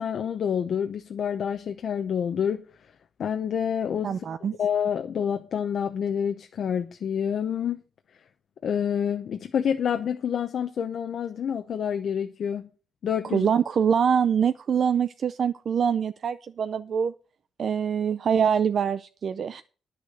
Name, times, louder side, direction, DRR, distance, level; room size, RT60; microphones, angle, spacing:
voice 1, 0.0-2.7 3.2-4.2 4.6-7.8 8.6-12.7 13.0-13.5, left 8 dB, 60° left, 0.8 m, -28 dB
voice 2, 4.0-4.6 13.3-17.1 17.6-19.6, right 7 dB, 50° right, 0.5 m, -24 dB
10.5 x 6.6 x 6.5 m
wide cardioid pair, 145°, 0 cm